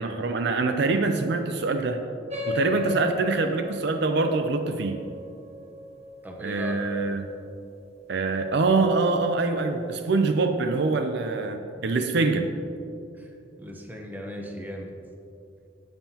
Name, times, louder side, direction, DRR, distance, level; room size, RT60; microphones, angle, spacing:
voice 1, 0.0-2.0 2.5-5.0 6.4-7.3 8.1-12.5, right 3 dB, 65° right, 6 dB, 0.5 m, -24 dB
sound 1, 2.3-7.2, left 3 dB, 35° right, 1.1 m, -35 dB
voice 2, 6.2-6.8 13.1-13.3 13.6-14.9, equal, 10° right, 0 dB, 0.9 m, -38 dB
16.0 x 5.6 x 2.9 m, 2.5 s
head